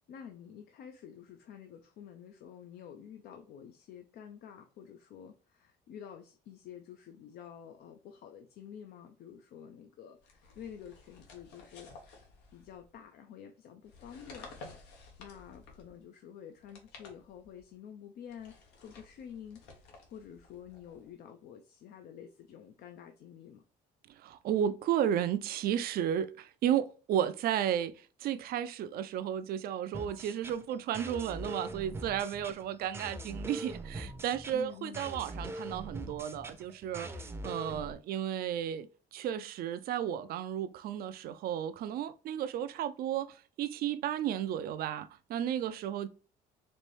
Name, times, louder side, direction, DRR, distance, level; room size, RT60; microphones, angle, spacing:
voice 1, 0.1-12.2 12.5-14.5 15.2-18.5 18.8-19.6 20.1-23.6 34.5-35.1, left 8 dB, 65° left, 0.5 m, -49 dB
sound 1, 10.2-13.0 13.8-16.0 16.6-17.7 18.3-21.1, left 3 dB, 90° left, 1.1 m, -54 dB
voice 2, 24.2-27.9 28.2-46.1, right 10 dB, 65° right, 0.4 m, -33 dB
sound 2, 29.9-37.9, right 1 dB, 15° right, 0.6 m, -42 dB
4.3 x 2.6 x 3.2 m
cardioid pair, 110°, 17 cm